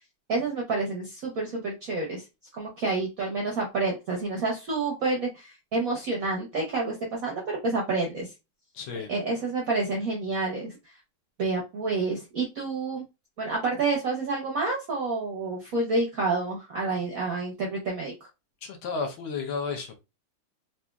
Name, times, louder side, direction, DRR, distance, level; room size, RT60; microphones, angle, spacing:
voice 1, 0.3-2.2 2.6-8.3 9.1-10.9 11.4-13.0 13.4-18.1, right 3 dB, 65° right, 0.8 m, -29 dB
voice 2, 8.7-9.1 18.6-20.0, left 5 dB, 70° left, 1.5 m, -32 dB
4.1 x 2.6 x 2.3 m
omnidirectional pair, 2.4 m